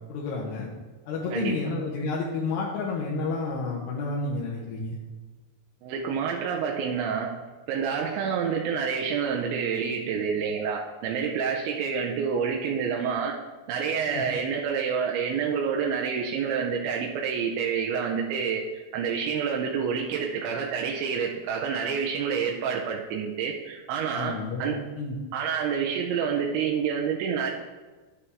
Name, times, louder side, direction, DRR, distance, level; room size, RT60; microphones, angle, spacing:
voice 1, 0.1-0.7 1.1-5.0 14.1-14.2 24.1-25.2, left 3 dB, 80° left, -4 dB, 3.5 m, -30 dB
voice 2, 5.8-7.4 7.7-13.4 13.7-18.6 18.9-24.8 25.3-27.5, right 6 dB, 85° right, 0 dB, 2.8 m, -28 dB
9.8 x 9.7 x 3.5 m, 1.3 s
omnidirectional pair, 5.7 m